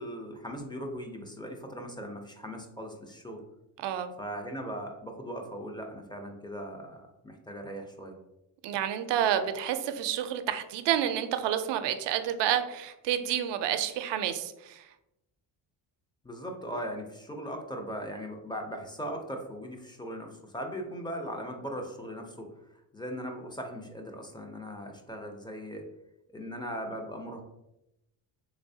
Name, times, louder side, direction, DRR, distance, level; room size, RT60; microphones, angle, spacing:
voice 1, 0.0-3.4 4.2-8.2 16.2-22.5 22.9-25.8 26.3-27.4, equal, 10° left, 3 dB, 0.5 m, -39 dB
voice 2, 3.8-4.1 8.6-14.9, right 10 dB, 75° right, 9 dB, 0.5 m, -29 dB
3.3 x 3.2 x 2.7 m, 0.88 s
cardioid pair, 90°, 43 cm